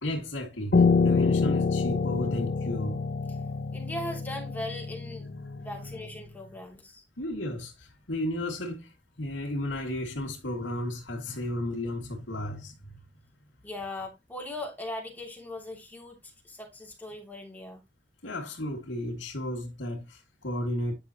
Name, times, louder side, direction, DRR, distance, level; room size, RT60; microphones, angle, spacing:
voice 1, 0.0-3.0 5.8-5.9 7.2-12.8 18.2-20.9, left 1 dB, 90° left, 2.2 m, -33 dB
Piano, 0.7-6.0, left 4 dB, 55° left, 0.6 m, -26 dB
voice 2, 3.7-5.3 5.6-7.0 13.6-16.2 16.4-17.8, left 1 dB, 10° left, 2.8 m, -39 dB
9.9 x 6.0 x 2.9 m
head